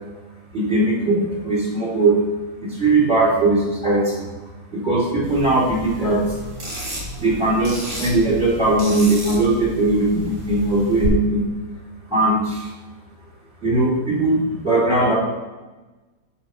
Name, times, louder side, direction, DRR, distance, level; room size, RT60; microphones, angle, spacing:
voice 1, 0.5-2.2 2.6-4.3 4.7-6.4 6.7-6.8 7.1-11.5 12.1-12.7 13.6-15.1, right 2 dB, 30° right, -5 dB, 3.1 m, -19 dB
sound 1, 5.2-11.1, right 1 dB, 85° right, 5.1 m, -33 dB
10.5 x 6.9 x 5.9 m, 1.2 s
omnidirectional pair, 2.4 m